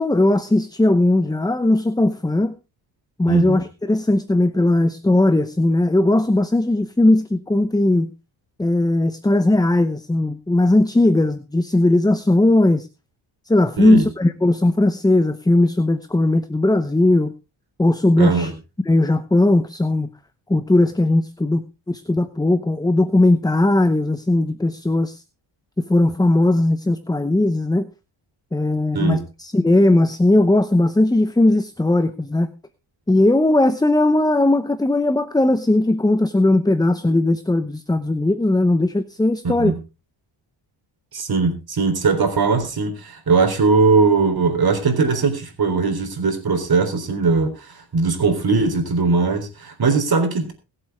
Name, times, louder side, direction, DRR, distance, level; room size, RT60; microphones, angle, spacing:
voice 1, 0.0-2.5 3.2-8.1 8.6-12.9 13.5-17.3 17.8-18.5 18.9-20.1 20.5-25.2 25.8-27.9 28.5-32.5 33.1-39.7, left 2 dB, 10° left, 12 dB, 0.8 m, -18 dB
voice 2, 3.3-3.6 13.8-14.0 18.2-18.5 28.9-29.2 39.4-39.8 41.1-50.5, right 4 dB, 50° right, 6 dB, 3.7 m, -20 dB
21.5 x 7.9 x 3.5 m, 0.29 s
cardioid pair, 95°, 48 cm